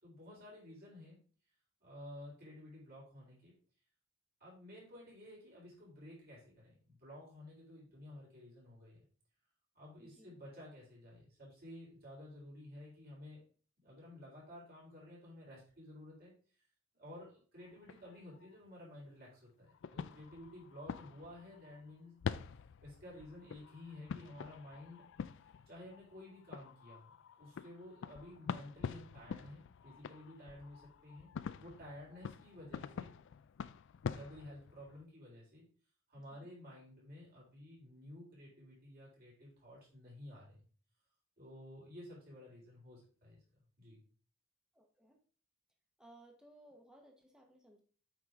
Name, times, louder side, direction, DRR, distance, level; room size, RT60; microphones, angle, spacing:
voice 1, 0.0-1.2 1.8-3.5 4.4-9.0 9.7-13.4 13.8-16.3 16.9-22.2 22.8-25.0 25.7-31.3 31.6-33.1 34.1-35.7 36.1-40.6 41.4-43.4 43.8-44.0, left 1 dB, 45° right, -5 dB, 4.0 m, -53 dB
voice 2, 10.0-10.4 36.2-36.5 44.7-45.2 46.0-47.8, right 1 dB, 5° right, 3 dB, 1.0 m, -61 dB
sound 1, 17.6-18.5 19.7-21.9 22.2-35.0, left 6 dB, 55° left, 0.3 m, -46 dB
8.2 x 4.8 x 3.7 m, 0.42 s
head